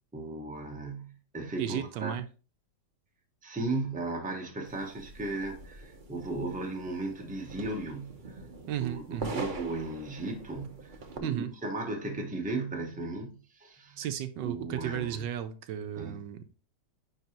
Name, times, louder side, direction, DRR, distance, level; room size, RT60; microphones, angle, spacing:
voice 1, 0.1-2.1 3.4-8.4 8.8-14.1 14.4-15.3 16.0-16.2, right 2 dB, 5° right, 0.9 m, -36 dB
voice 2, 1.6-2.2 8.7-9.3 11.2-11.5 14.0-16.4, right 10 dB, 80° right, 1.3 m, -34 dB
sound 1, 4.6-11.2, right 3 dB, 40° right, 0.8 m, -43 dB
9.6 x 3.8 x 2.9 m
omnidirectional pair, 1.9 m